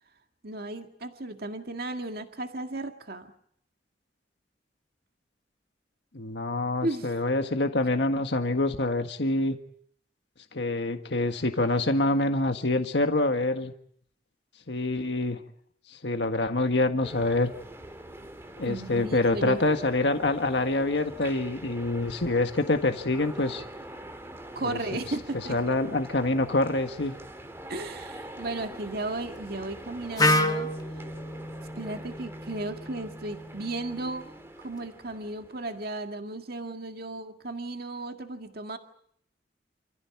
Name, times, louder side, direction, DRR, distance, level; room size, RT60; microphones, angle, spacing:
voice 1, 0.4-3.3 6.8-7.2 18.7-19.6 24.6-25.8 27.7-31.1 31.8-34.3 34.6-38.8, right 2 dB, 60° right, 5 dB, 2.0 m, -35 dB
voice 2, 6.1-9.5 10.5-13.7 14.7-15.4 15.9-17.5 18.6-23.6 24.6-24.8 25.5-27.2, left 2 dB, 75° left, 6 dB, 1.7 m, -26 dB
sound 1, 17.0-36.1, right 1 dB, 15° right, 2.0 m, -44 dB
Wind instrument woodwind instrument, 30.2-34.1, left 1 dB, 20° left, 1.4 m, -29 dB
28.5 x 15.0 x 9.6 m, 0.67 s
head